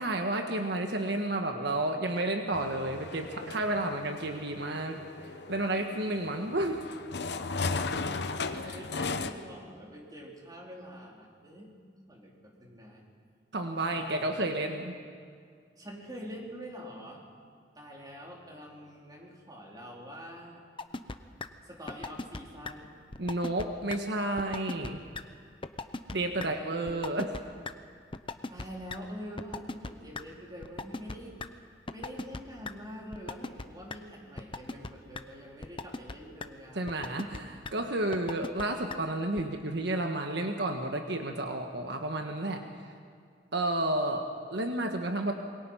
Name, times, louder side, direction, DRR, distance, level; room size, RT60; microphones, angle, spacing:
voice 1, 0.0-6.9 13.5-15.0 23.2-25.0 26.1-27.4 36.7-42.9 43.5-45.3, right 1 dB, 65° right, 4 dB, 1.5 m, -31 dB
sound 1, 2.5-9.3, left 4 dB, 65° left, 1.0 m, -36 dB
voice 2, 8.4-11.7 12.1-13.0 13.9-14.5 15.8-17.2 17.7-20.6 21.6-23.0 26.4-27.0 28.5-31.4 31.9-36.9, equal, 20° right, -2 dB, 4.2 m, -45 dB
sound 2, 20.8-21.2 21.4-21.5 21.9-22.4 22.6-22.7 23.1-23.7 23.9-24.0 24.4-24.9 25.1-25.2 25.6-26.1 26.4-26.5 26.9-27.4 27.7-27.8 28.1-28.6 28.9-29.0 29.4-30.2 30.6-31.5 31.9-32.4 32.6-32.7 33.1-33.6 33.9-34.0 34.4-34.9 35.1-35.2 35.6-36.1 36.4-36.5 36.9-37.4 37.6-37.7 38.1-38.6 38.9-39.0 39.4-39.5, left 3 dB, 30° left, 0.8 m, -37 dB
27.0 x 22.5 x 5.8 m, 2.1 s
head